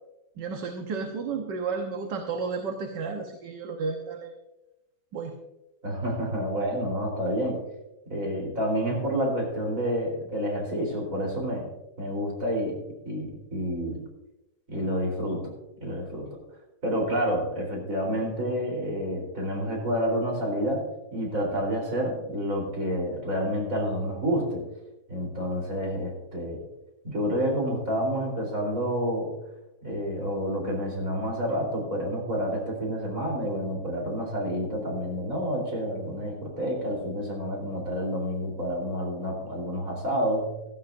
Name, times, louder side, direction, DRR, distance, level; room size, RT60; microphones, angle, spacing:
voice 1, 0.4-4.3 5.1-5.3, right 4 dB, 65° right, 3 dB, 1.7 m, -32 dB
voice 2, 5.8-7.6 8.1-11.7 12.0-12.8 13.1-14.0 14.7-15.5 15.8-16.3 16.8-20.8 21.1-24.6 25.1-26.6 27.0-29.3 29.8-40.6, equal, 40° right, 0 dB, 4.3 m, -29 dB
16.0 x 13.5 x 2.6 m, 0.93 s
omnidirectional pair, 2.2 m